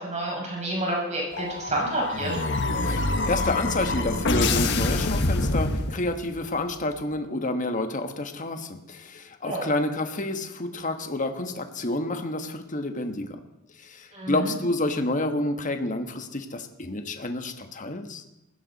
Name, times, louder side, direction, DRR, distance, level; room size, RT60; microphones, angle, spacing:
voice 1, 0.0-2.4 9.4-9.7 14.1-14.5, right 1 dB, 35° right, -3 dB, 6.4 m, -29 dB
sound 1, 1.3-6.3, left 2 dB, 55° left, 1.4 m, -26 dB
voice 2, 2.8-13.4 13.7-18.2, left 2 dB, 35° left, 7 dB, 1.4 m, -29 dB
20.5 x 16.0 x 4.1 m, 0.89 s
head